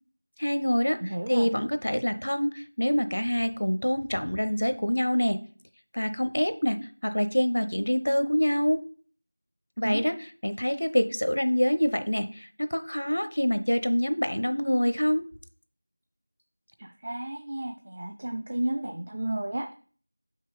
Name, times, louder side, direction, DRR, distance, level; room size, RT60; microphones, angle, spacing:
voice 1, 0.4-1.0 1.3-5.4 5.9-6.8 7.0-8.8 9.8-10.1 10.4-15.2, equal, 70° left, 10 dB, 0.8 m, -26 dB
voice 2, 1.0-1.5 9.8-10.1 16.8-19.7, right 1 dB, 25° right, 6 dB, 0.3 m, -32 dB
6.7 x 5.5 x 3.9 m, 0.43 s
figure-of-eight pair, 180°, 0 cm